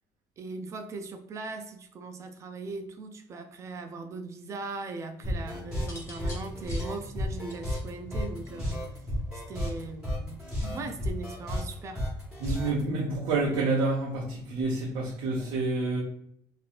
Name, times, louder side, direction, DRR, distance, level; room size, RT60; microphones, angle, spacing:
voice 1, 0.4-9.0 9.3-10.4 10.7-12.0 12.5-12.8, right 3 dB, 35° right, 6 dB, 0.3 m, -39 dB
sound 1, 5.2-12.8, left 1 dB, 10° right, 1.4 m, -33 dB
sound 2, 5.8-8.9 10.0-10.4, left 1 dB, 30° left, 1.0 m, -47 dB
voice 2, 12.4-16.0, right 3 dB, 75° right, -4 dB, 0.8 m, -28 dB
3.0 x 2.8 x 2.4 m, 0.68 s
cardioid pair, 150°, 9 cm